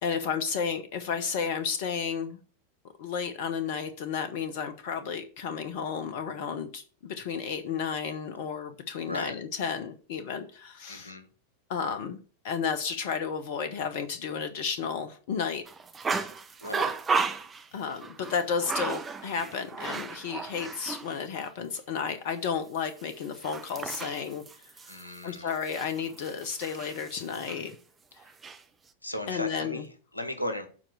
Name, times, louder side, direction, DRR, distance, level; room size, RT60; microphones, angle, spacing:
voice 1, 0.0-2.4 3.0-11.1 11.7-12.2 12.4-15.6 17.7-27.8 29.3-29.8, left 6 dB, 50° left, 0.8 m, -32 dB
voice 2, 10.9-11.3 16.6-16.9 24.9-25.5 29.0-30.7, left 1 dB, 85° left, 1.2 m, -36 dB
sound 1, 15.7-21.1 21.4-21.5 23.0-27.7 28.2-28.6, right 5 dB, 15° right, 0.7 m, -34 dB
7.4 x 4.4 x 6.6 m
figure-of-eight pair, 90°, 0 cm